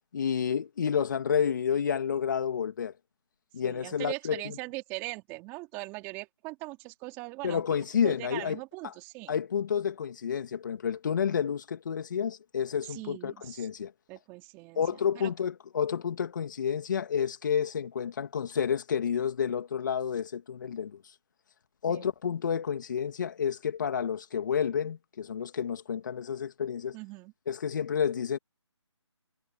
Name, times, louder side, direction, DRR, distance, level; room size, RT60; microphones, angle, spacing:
voice 1, 0.1-2.9 3.5-4.6 7.4-8.9 9.3-13.9 14.7-21.1 21.8-27.0 27.5-28.4, left 7 dB, 40° left, 2.5 m, -30 dB
voice 2, 3.6-7.6 8.0-9.3 12.9-13.7 14.1-14.8 15.2-15.3 21.9-22.1 26.9-27.3, right 24 dB, 15° right, 4.0 m, -40 dB
figure-of-eight pair, 165°, 16 cm